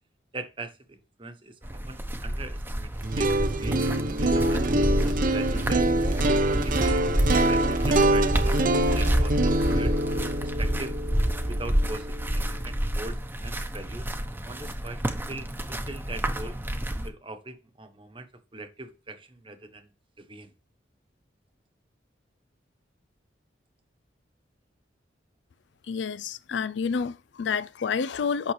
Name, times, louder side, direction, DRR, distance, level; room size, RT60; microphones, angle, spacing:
voice 1, 0.3-3.8 4.2-5.9 6.5-9.9 10.4-11.0 11.5-12.1 12.3-14.1 14.4-16.6 17.0-18.3 18.5-19.9 20.2-20.5, right 2 dB, 30° right, 1.2 m, -41 dB
sound 1, 1.6-17.1, equal, 10° right, 0.9 m, -28 dB
sound 2, 2.9-13.0, right 1 dB, 50° right, 0.8 m, -25 dB
voice 2, 25.9-28.5, left 6 dB, 75° left, 0.4 m, -29 dB
8.8 x 6.0 x 3.3 m
head